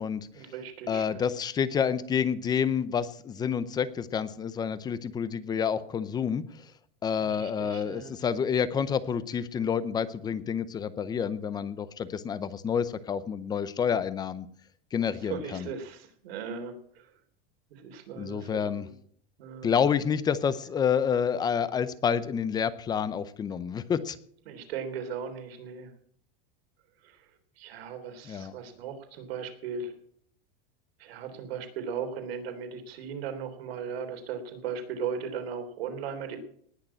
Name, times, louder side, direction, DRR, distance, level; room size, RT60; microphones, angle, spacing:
voice 1, 0.3-1.2 7.2-8.1 15.2-17.1 17.7-18.9 19.4-19.7 24.5-25.9 27.0-27.2 27.6-29.9 31.0-36.4, right 6 dB, 80° right, 6 dB, 3.4 m, -37 dB
voice 2, 0.9-6.4 7.0-14.5 14.9-15.7 18.1-18.9 19.6-24.2 28.2-28.5, left 7 dB, 15° left, 15 dB, 0.6 m, -28 dB
19.0 x 6.6 x 8.7 m, 0.63 s
supercardioid pair, 165°, 30 cm